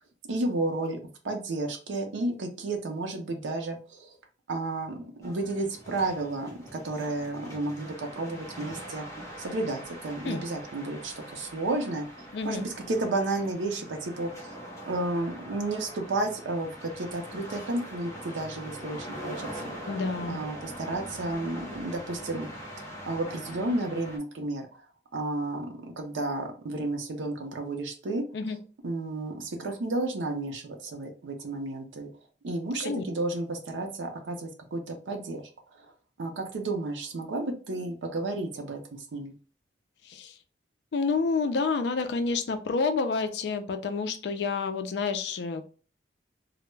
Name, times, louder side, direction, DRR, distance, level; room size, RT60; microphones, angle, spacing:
voice 1, 0.3-4.2 4.5-9.1 9.4-14.6 14.9-19.7 20.3-22.5 23.0-24.7 25.1-28.3 28.8-32.1 32.4-35.4 35.8-35.9 36.2-39.4, right 2 dB, 85° right, 4 dB, 0.5 m, -32 dB
sound 1, 5.2-24.2, equal, 15° left, 0.7 m, -42 dB
voice 2, 12.3-12.6 19.9-20.4 28.3-28.6 32.8-33.0 40.0-40.4 40.9-45.6, left 4 dB, 65° left, 8 dB, 0.4 m, -29 dB
2.2 x 2.0 x 3.1 m, 0.37 s
head